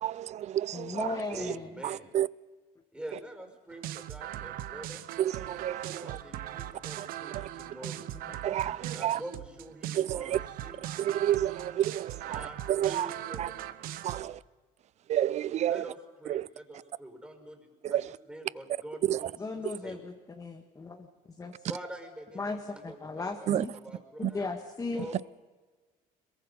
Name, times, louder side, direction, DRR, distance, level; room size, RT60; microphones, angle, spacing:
voice 1, 0.0-1.6 1.8-2.3 5.2-6.2 7.0-7.1 7.3-7.5 8.4-9.2 9.9-10.4 11.0-13.1 13.4-13.5 14.0-14.4 15.1-15.9 16.3-16.5 17.8-18.2 19.0-19.3 19.6-19.8 23.5-23.7 24.2-24.3 25.1-25.2, right 11 dB, 50° right, 0.5 m, -30 dB
voice 2, 0.7-1.7 8.7-8.8 19.4-21.1 21.4-21.5 22.4-23.7 24.2-25.2, left 3 dB, 20° left, 1.8 m, -36 dB
voice 3, 1.3-2.1 2.9-5.0 5.9-8.1 8.9-10.8 12.3-12.6 12.9-13.5 15.7-17.6 17.9-18.0 18.3-20.0 21.7-24.4 24.9-25.2, right 1 dB, 5° right, 5.1 m, -45 dB
sound 1, 3.7-14.2, right 13 dB, 75° right, 0.9 m, -40 dB
22.5 x 22.0 x 5.6 m
cardioid pair, 105°, 15 cm